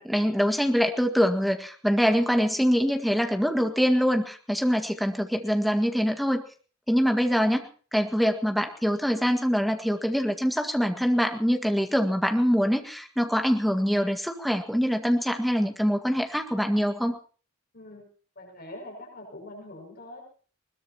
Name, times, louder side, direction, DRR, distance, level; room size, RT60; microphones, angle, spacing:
voice 1, 0.0-6.4 6.9-17.2, equal, ahead, 4 dB, 1.8 m, -24 dB
voice 2, 17.7-18.0 18.4-20.2, left 1 dB, 45° left, 0 dB, 6.2 m, -43 dB
21.0 x 20.5 x 3.0 m, 0.41 s
head